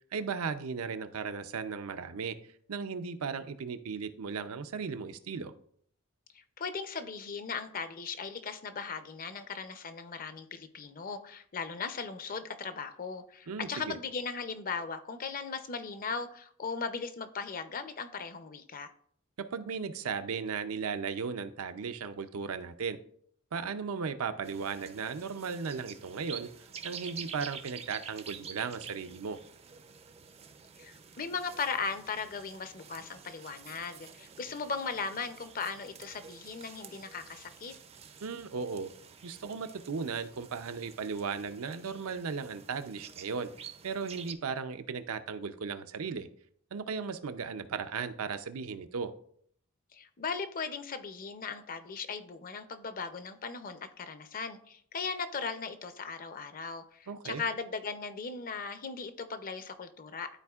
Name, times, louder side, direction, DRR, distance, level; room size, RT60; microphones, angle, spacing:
voice 1, 0.1-2.4 2.7-5.5 13.5-14.0 19.4-23.0 23.5-26.5 26.8-29.4 38.2-38.9 39.2-43.5 43.8-46.3 46.7-49.1 57.1-57.4, right 5 dB, 80° right, 9 dB, 0.5 m, -36 dB
voice 2, 6.3-18.9 30.8-37.7 49.9-60.3, left 5 dB, 40° left, 10 dB, 0.5 m, -38 dB
sound 1, 24.4-44.3, right 7 dB, 30° right, 0.4 m, -49 dB
12.5 x 4.3 x 2.4 m, 0.62 s
head